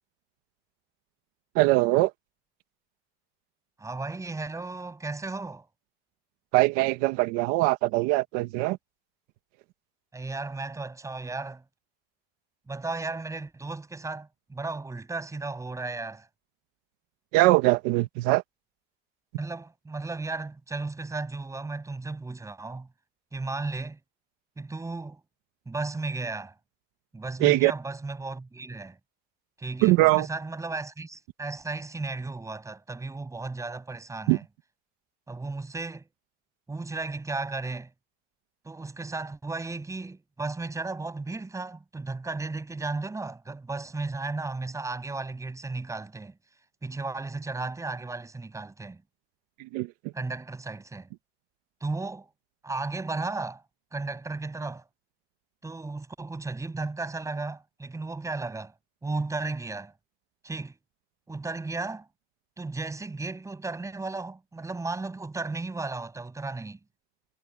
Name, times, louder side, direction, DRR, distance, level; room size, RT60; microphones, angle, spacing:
voice 1, 1.5-2.1 6.5-8.8 17.3-18.4 27.4-27.7 29.8-30.3 34.3-34.4 49.6-49.9, right 20 dB, 75° right, 1.6 m, -22 dB
voice 2, 3.8-5.7 10.1-11.6 12.7-16.3 19.4-22.9 23.3-24.0 24.6-25.2 25.7-26.5 27.1-29.0 29.6-34.4 35.3-36.1 36.7-37.9 38.6-46.3 46.8-49.0 50.1-51.1 51.8-52.3 52.6-53.6 53.9-54.8 55.6-58.7 59.0-59.9 60.4-60.7 61.3-62.1 62.6-66.8, right 3 dB, 10° right, 7.7 m, -34 dB
cardioid pair, 160°, 30 cm